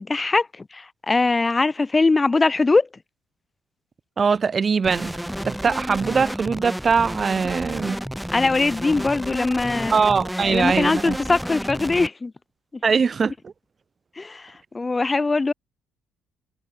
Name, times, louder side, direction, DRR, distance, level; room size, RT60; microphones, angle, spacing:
voice 1, 0.0-2.9 8.3-9.9 10.4-12.3 14.2-15.5, left 3 dB, 15° left, 6.8 m, -21 dB
voice 2, 4.2-5.1 5.5-8.0 9.9-11.2 12.8-13.5, right 5 dB, 30° right, 2.6 m, -21 dB
sound 1, 4.8-12.1, equal, ahead, 2.1 m, -31 dB
cardioid pair, 145°, 0 cm